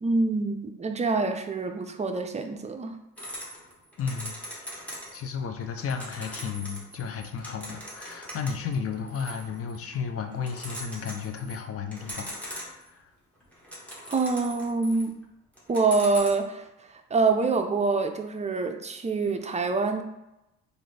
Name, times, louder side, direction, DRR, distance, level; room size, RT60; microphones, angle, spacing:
voice 1, 0.0-3.0 14.1-15.1 15.7-20.0, right 3 dB, 25° right, 5 dB, 0.5 m, -26 dB
sound 1, 3.2-5.3 5.6-10.0 10.3-11.6 11.9-13.0 13.4-15.2 15.6-16.3, equal, 5° left, 1.2 m, -41 dB
voice 2, 4.0-4.7 5.1-13.0, left 6 dB, 50° left, 6 dB, 0.6 m, -33 dB
3.9 x 2.6 x 3.3 m, 0.90 s
cardioid pair, 90°, 30 cm